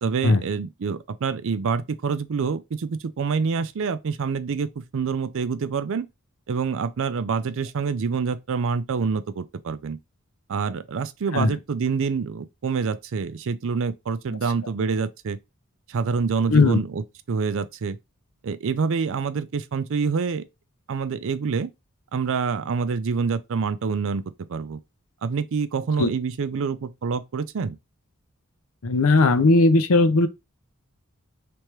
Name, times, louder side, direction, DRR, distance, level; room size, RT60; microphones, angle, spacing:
voice 1, 0.0-6.0 6.5-10.0 10.5-15.4 15.9-18.0 18.4-20.4 20.9-21.7 22.1-24.2 24.5-24.8 25.2-27.8, right 5 dB, 65° right, 0.4 m, -26 dB
voice 2, 28.8-30.3, left 3 dB, 70° left, 0.6 m, -17 dB
3.4 x 3.1 x 3.0 m
head